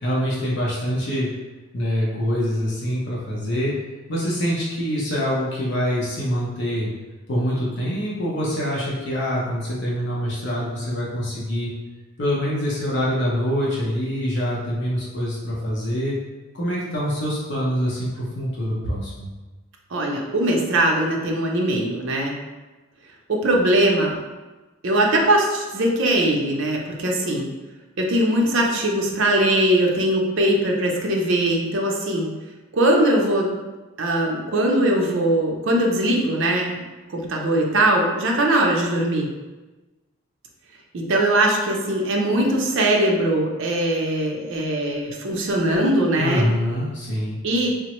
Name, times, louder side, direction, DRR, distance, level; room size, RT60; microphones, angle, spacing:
voice 1, 0.0-1.3 1.7-3.7 4.1-6.9 7.3-11.7 12.2-16.1 16.5-19.3 46.2-47.4, equal, 55° left, -6 dB, 0.7 m, -25 dB
voice 2, 19.9-22.4 23.3-24.2 24.8-27.5 28.0-32.3 32.7-33.5 34.0-36.8 37.1-39.3 40.9-46.5 47.4-47.8, right 1 dB, 60° right, 0 dB, 0.5 m, -21 dB
3.4 x 2.0 x 2.9 m, 1.2 s
head